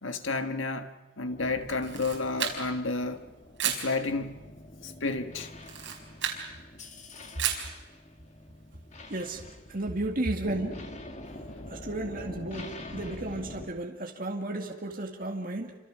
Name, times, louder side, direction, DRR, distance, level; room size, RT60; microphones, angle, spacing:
voice 1, 0.0-3.2 3.6-4.4 4.8-5.5 11.3-11.7, left 3 dB, 85° left, 1.7 m, -32 dB
sound 1, 1.3-13.7, left 1 dB, 35° left, 2.3 m, -45 dB
Camera, 1.7-2.9 3.6-3.9 5.6-6.4 7.4-7.7, right 9 dB, 65° right, 5.2 m, -32 dB
voice 2, 9.1-9.4 9.7-10.9 11.7-15.8, right 2 dB, 45° right, 2.2 m, -33 dB
28.5 x 26.5 x 6.3 m
head